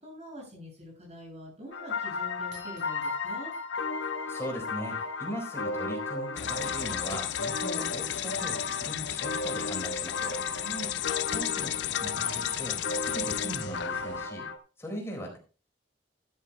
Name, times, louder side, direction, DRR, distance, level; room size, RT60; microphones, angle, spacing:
voice 1, 0.0-3.5 10.6-11.0, equal, 40° right, -1 dB, 7.2 m, -44 dB
sound 1, 1.7-14.6, left 3 dB, 90° left, 1.2 m, -34 dB
sound 2, 2.5-5.1, right 1 dB, 75° right, 5.4 m, -56 dB
voice 2, 4.3-10.4 11.3-14.5 14.8-15.4, equal, 15° left, 0 dB, 4.2 m, -39 dB
sound 3, 6.4-14.3, left 13 dB, 70° left, 0.4 m, -34 dB
13.0 x 12.5 x 2.2 m, 0.34 s
head